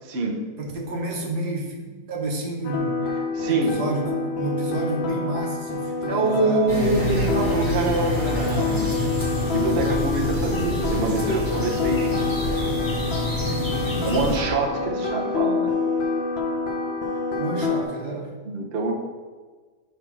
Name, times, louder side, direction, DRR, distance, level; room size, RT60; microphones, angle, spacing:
voice 1, 0.0-0.4 3.3-3.8 6.1-8.9 9.5-12.2 13.8-15.7 18.4-18.9, right 3 dB, 45° right, 0 dB, 1.0 m, -25 dB
voice 2, 0.6-3.0 3.5-6.9 13.8-14.1 17.4-18.3, right 2 dB, 70° right, 0 dB, 1.7 m, -30 dB
sound 1, 2.6-17.8, left 4 dB, 45° left, 0.9 m, -27 dB
sound 2, 6.7-14.4, left 2 dB, 10° left, 1.9 m, -27 dB
5.8 x 4.6 x 6.0 m, 1.4 s
omnidirectional pair, 1.8 m